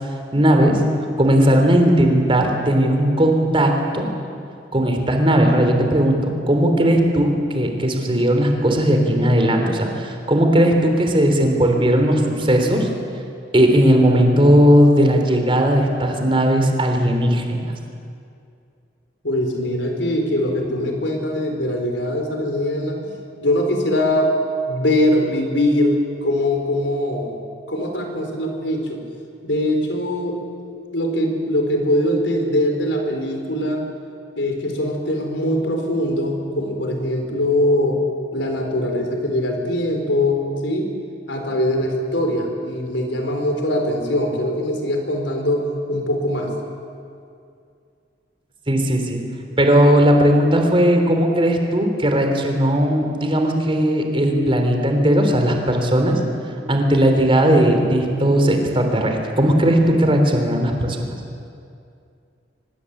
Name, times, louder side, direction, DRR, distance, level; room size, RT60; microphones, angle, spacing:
voice 1, 0.3-0.8 1.2-4.1 4.7-6.2 6.5-12.9 13.5-17.7 48.7-49.2 49.6-56.2 56.7-61.1, equal, 30° right, 4 dB, 3.5 m, -17 dB
voice 2, 19.2-23.0 23.4-24.4 24.7-27.4 27.7-29.0 29.4-30.4 30.9-33.8 34.4-38.0 38.3-40.9 41.3-46.5, left 1 dB, 85° left, 3 dB, 4.3 m, -22 dB
24.5 x 20.5 x 8.6 m, 2.4 s
head